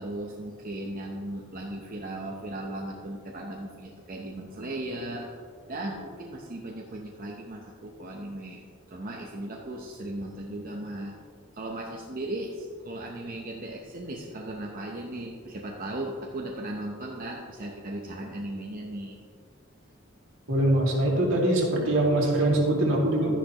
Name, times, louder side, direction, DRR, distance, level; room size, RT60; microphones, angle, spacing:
voice 1, 0.0-5.3 5.6-8.6 8.9-11.1 11.5-19.2, right 1 dB, 45° right, 0 dB, 0.8 m, -37 dB
voice 2, 20.5-23.3, right 1 dB, 70° right, -2 dB, 2.3 m, -23 dB
12.0 x 10.0 x 3.0 m, 2.1 s
head